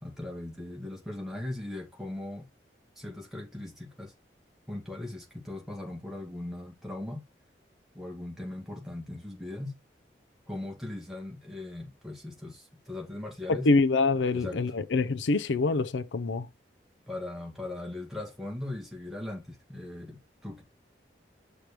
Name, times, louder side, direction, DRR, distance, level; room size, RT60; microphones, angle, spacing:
voice 1, 0.0-2.5 3.0-4.1 4.7-7.2 7.9-9.7 10.5-13.7 14.3-14.6 17.1-20.6, left 1 dB, ahead, 2.0 m, -39 dB
voice 2, 13.5-16.4, left 3 dB, 85° left, 0.5 m, -25 dB
6.0 x 3.4 x 4.9 m
head